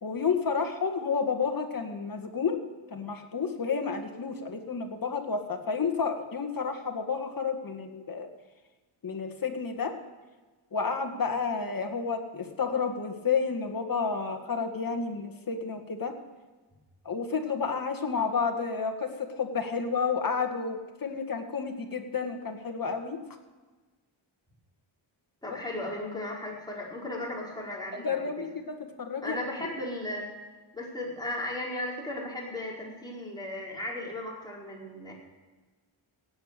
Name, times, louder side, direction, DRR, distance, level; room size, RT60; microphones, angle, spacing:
voice 1, 0.0-2.6 2.9-8.3 9.0-9.9 10.7-16.1 17.1-23.2 25.5-25.6 27.9-29.5, left 5 dB, 45° left, 5 dB, 2.0 m, -31 dB
voice 2, 25.4-28.2 29.2-30.3 30.7-35.1, left 1 dB, 10° left, -4 dB, 4.9 m, -36 dB
16.5 x 9.4 x 6.8 m, 1.3 s
wide cardioid pair, 100°, 49 cm